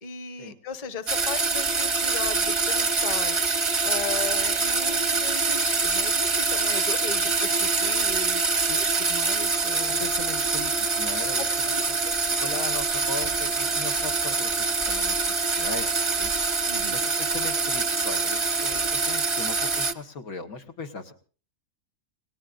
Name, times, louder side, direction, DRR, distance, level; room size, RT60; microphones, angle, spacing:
voice 1, 0.0-3.4 3.8-10.1 11.3-12.2 16.7-17.0, left 5 dB, 30° left, 10 dB, 1.0 m, -37 dB
sound 1, 1.1-19.9, right 4 dB, 30° right, 0.6 m, -25 dB
voice 2, 10.0-11.5 11.8-12.0 12.4-16.3 16.9-21.1, left 4 dB, 85° left, 5 dB, 1.9 m, -38 dB
29.0 x 18.5 x 2.5 m, 0.39 s
omnidirectional pair, 1.5 m